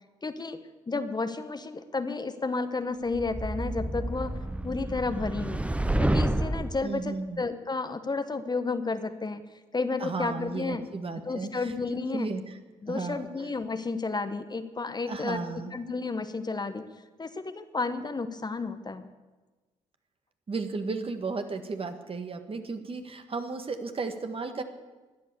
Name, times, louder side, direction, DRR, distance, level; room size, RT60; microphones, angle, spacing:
voice 1, 0.2-4.4 4.6-5.6 6.0-9.4 9.7-10.9 11.3-12.3 12.8-15.4 15.7-16.8 17.2-19.1, left 3 dB, 25° left, 10 dB, 1.2 m, -32 dB
sound 1, 3.1-6.8, right 1 dB, 10° right, 0.9 m, -29 dB
voice 2, 6.8-7.4 10.0-11.7 12.1-12.6 12.9-13.3 15.1-15.7 20.5-24.6, right 4 dB, 35° right, 7 dB, 1.9 m, -34 dB
16.5 x 11.0 x 7.1 m, 1.2 s
hypercardioid pair, 45°, 15 cm